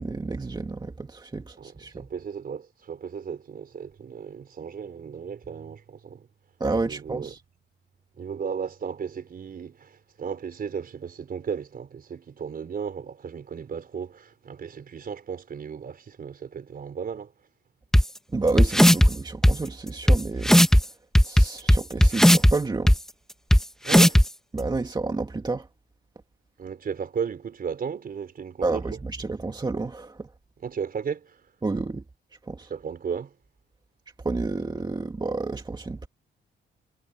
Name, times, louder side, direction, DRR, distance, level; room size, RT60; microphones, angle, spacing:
voice 1, 0.0-2.1 6.6-7.4 18.3-20.6 21.2-22.9 24.5-25.7 28.6-30.3 31.6-32.0 32.4-32.7 34.2-36.1, right 3 dB, 20° right, 2.2 m, -30 dB
voice 2, 1.6-6.3 6.9-7.3 8.2-17.3 23.8-24.2 26.6-28.8 30.6-31.4 32.7-33.3, right 6 dB, 50° right, 4.4 m, -35 dB
sound 1, 17.9-18.0 18.6-19.1 19.4-19.5 20.1-20.2 20.4-20.8 21.1-22.5 22.9-23.0 23.5-23.6 23.9-24.2, equal, ahead, 1.3 m, -15 dB
cardioid pair, 90°, 20 cm